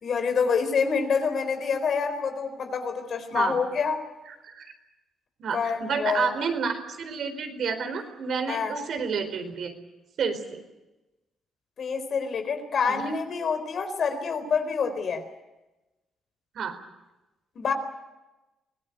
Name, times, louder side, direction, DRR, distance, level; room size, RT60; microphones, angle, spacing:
voice 1, 0.0-4.0 5.5-6.3 8.5-8.7 11.8-15.2 17.6-17.7, left 5 dB, 55° left, 7 dB, 4.1 m, -27 dB
voice 2, 5.4-9.7 10.2-10.6 12.9-13.0 16.5-16.8, right 6 dB, 65° right, 7 dB, 4.3 m, -30 dB
24.5 x 18.0 x 9.3 m, 1.0 s
cardioid pair, 90°, 0 cm